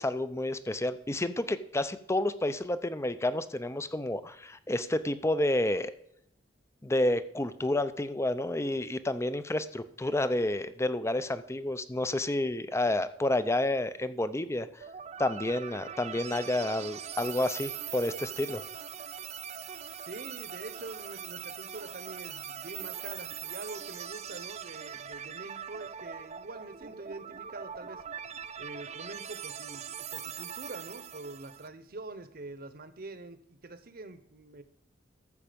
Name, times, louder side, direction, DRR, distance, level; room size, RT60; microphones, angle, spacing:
voice 1, 0.0-5.9 6.8-14.7 15.2-18.6, left 1 dB, 15° left, 13 dB, 0.6 m, -30 dB
sound 1, 14.8-31.7, right 8 dB, 40° right, 0.5 m, -41 dB
voice 2, 20.1-28.0 28.6-34.6, right 2 dB, 55° right, 11 dB, 1.0 m, -45 dB
13.5 x 7.3 x 5.2 m, 0.76 s
head